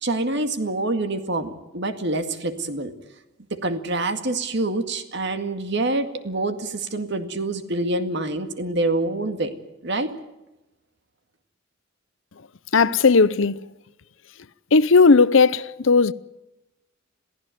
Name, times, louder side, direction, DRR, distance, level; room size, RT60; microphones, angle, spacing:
voice 1, 0.0-2.9 3.5-9.5 9.8-10.1, right 2 dB, 55° right, 2.1 m, -26 dB
voice 2, 12.7-13.7 14.7-16.1, left 4 dB, 65° left, 0.7 m, -16 dB
22.5 x 16.0 x 9.3 m
head